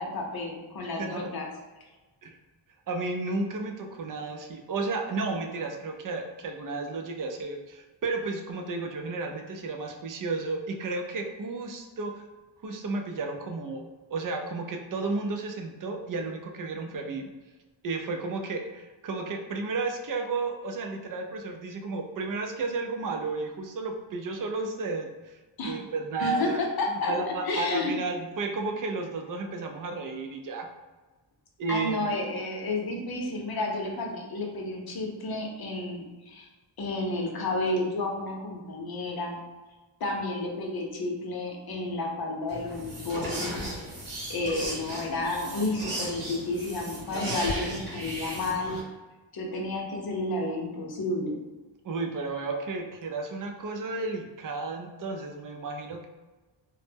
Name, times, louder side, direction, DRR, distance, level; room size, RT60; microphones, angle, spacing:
voice 1, 0.0-1.5 25.6-25.8 26.2-27.1 27.4-27.9 31.7-36.5 36.8-39.4 40.0-43.6 44.3-48.8 49.3-51.4, left 2 dB, 55° left, 0 dB, 0.7 m, -31 dB
voice 2, 1.0-1.3 2.2-2.4 2.9-12.3 12.6-13.8 14.1-17.3 17.8-26.6 26.9-30.7 31.6-32.2 51.8-56.0, right 3 dB, 45° right, 4 dB, 0.4 m, -33 dB
sound 1, 42.5-48.8, right 1 dB, 70° right, 1.1 m, -36 dB
2.1 x 2.0 x 3.3 m, 1.2 s
cardioid pair, 90°, 45 cm